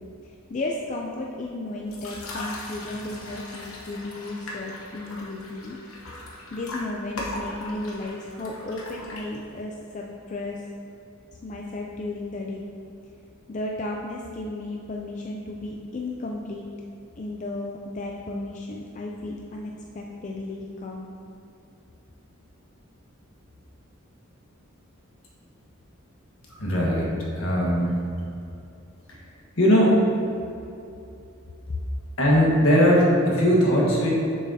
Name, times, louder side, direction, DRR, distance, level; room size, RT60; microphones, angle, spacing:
voice 1, 0.2-5.8 6.2-10.6 11.4-12.6 13.5-16.7 17.2-21.1, left 2 dB, 35° left, -1 dB, 0.4 m, -34 dB
sound 1, 1.9-9.6, left 2 dB, 85° left, 1.1 m, -39 dB
voice 2, 26.6-28.0 29.1-29.2 29.6-30.0 32.2-34.1, equal, 70° left, -4 dB, 1.4 m, -20 dB
7.0 x 6.1 x 2.8 m, 2.7 s
head